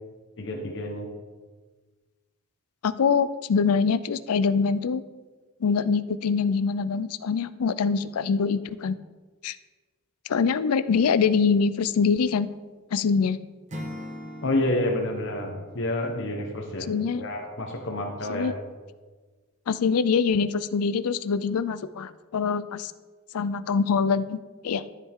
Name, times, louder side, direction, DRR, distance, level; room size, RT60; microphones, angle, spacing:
voice 1, 0.4-1.1 14.4-18.5, left 1 dB, 60° left, 2 dB, 1.3 m, -29 dB
voice 2, 2.8-5.0 5.6-9.0 9.4-9.6 10.3-12.5 12.9-13.4 16.8-17.2 18.3-18.5 19.7-22.9 23.3-24.9, left 5 dB, 85° left, 15 dB, 0.4 m, -24 dB
Acoustic guitar / Strum, 13.7-16.8, equal, 35° right, 1.4 m, -41 dB
13.0 x 7.3 x 3.7 m, 1.4 s
head